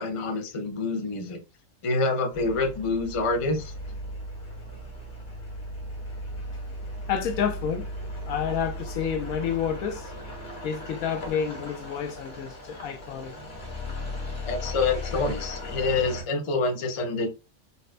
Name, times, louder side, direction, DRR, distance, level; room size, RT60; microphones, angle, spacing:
voice 1, 0.0-1.4 1.8-3.7 14.5-17.3, left 3 dB, 55° left, 0.3 m, -27 dB
sound 1, 2.3-16.2, left 1 dB, 40° left, 1.2 m, -37 dB
voice 2, 7.0-10.1 10.6-13.3, left 8 dB, 80° left, 1.1 m, -30 dB
4.0 x 2.1 x 2.4 m
omnidirectional pair, 1.4 m